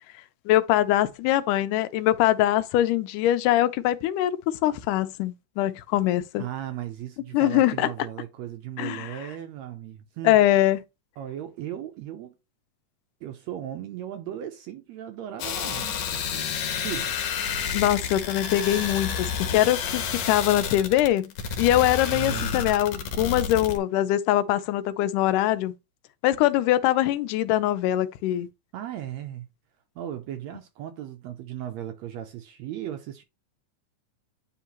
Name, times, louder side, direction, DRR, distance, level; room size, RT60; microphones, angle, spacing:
voice 1, 0.5-6.4 7.3-7.9 8.8-9.2 10.2-10.8 16.7-16.8 17.7-21.3 21.6-25.7 26.2-28.5, left 13 dB, 90° left, 2.2 m, -23 dB
voice 2, 6.4-10.4 11.2-12.4 13.2-16.5 16.8-17.2 22.1-22.7 28.7-29.5 30.0-33.2, right 11 dB, 80° right, 1.6 m, -36 dB
sound 1, 15.4-23.8, left 7 dB, 70° left, 2.0 m, -30 dB
9.6 x 3.5 x 3.0 m
omnidirectional pair, 3.6 m